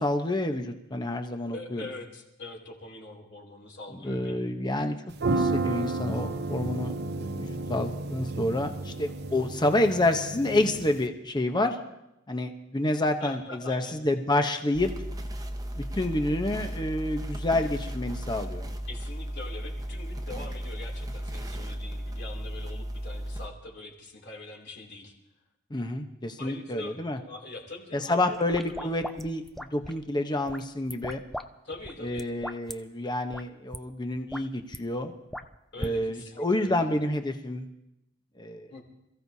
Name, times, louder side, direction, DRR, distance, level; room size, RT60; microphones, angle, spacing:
voice 1, 0.0-1.8 3.9-5.0 5.3-11.8 12.3-14.9 15.7-18.7 25.7-27.2 27.9-31.2 32.0-35.1 35.8-37.7 38.4-38.7, left 1 dB, 20° left, 6 dB, 0.9 m, -28 dB
voice 2, 1.5-4.5 13.2-14.0 18.9-25.1 26.4-28.9 31.6-32.3 35.7-36.9 38.7-38.8, left 2 dB, 55° left, 1 dB, 2.9 m, -43 dB
sound 1, 5.1-11.0, right 3 dB, 55° right, 0.8 m, -32 dB
sound 2, 14.7-23.5, equal, 20° right, 1.1 m, -35 dB
sound 3, 28.3-30.0 30.5-31.5 31.7-32.7 33.3-33.4 33.7-33.8 34.1-34.8 35.3-35.9, equal, ahead, 0.5 m, -38 dB
27.0 x 15.0 x 2.8 m, 0.88 s
head